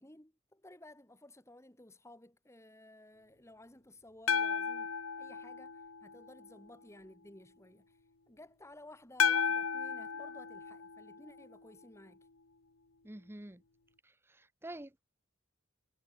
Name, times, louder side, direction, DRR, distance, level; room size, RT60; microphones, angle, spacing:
voice 1, 0.0-8.0 8.3-12.3, left 1 dB, 15° left, 2.8 m, -56 dB
sound 1, 4.3-6.5 9.2-11.6, left 6 dB, 85° left, 1.5 m, -34 dB
voice 2, 13.0-13.6 14.0-15.0, right 1 dB, 10° right, 0.9 m, -48 dB
head